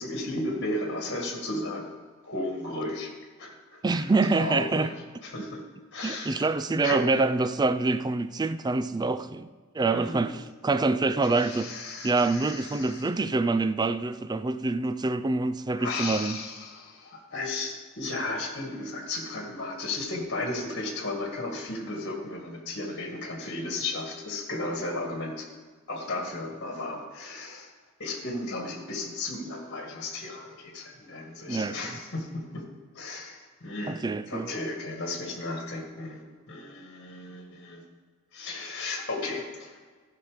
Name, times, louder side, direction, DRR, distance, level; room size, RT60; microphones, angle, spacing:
voice 1, 0.0-1.9 2.2-3.1 3.4-4.0 4.4-4.9 5.2-5.6 5.9-6.5 6.8-7.1 9.9-10.4 11.2-13.1 15.8-25.5 25.9-27.7 28.0-32.6 32.9-34.0 34.3-36.2 36.5-37.8 38.3-39.8, left 2 dB, 55° left, 1.8 m, -34 dB
voice 2, 3.8-4.9 6.0-9.5 9.7-11.7 12.0-16.4 31.5-31.8 33.9-34.5, right 3 dB, 20° right, 0.3 m, -26 dB
14.0 x 5.9 x 5.0 m
head